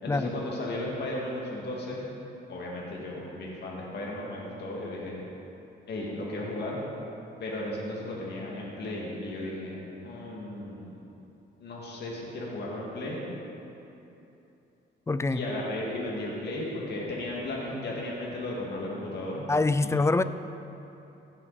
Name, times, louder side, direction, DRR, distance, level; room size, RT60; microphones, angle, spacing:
voice 1, 0.0-2.1 2.5-5.2 5.9-6.8 7.4-10.9 11.6-13.2 15.3-19.5 19.8-20.0, left 1 dB, 55° left, -4 dB, 2.2 m, -35 dB
voice 2, 15.1-15.4 19.5-20.2, left 3 dB, 15° left, 13 dB, 0.4 m, -24 dB
16.5 x 7.4 x 4.2 m, 2.9 s
cardioid pair, 90°, 20 cm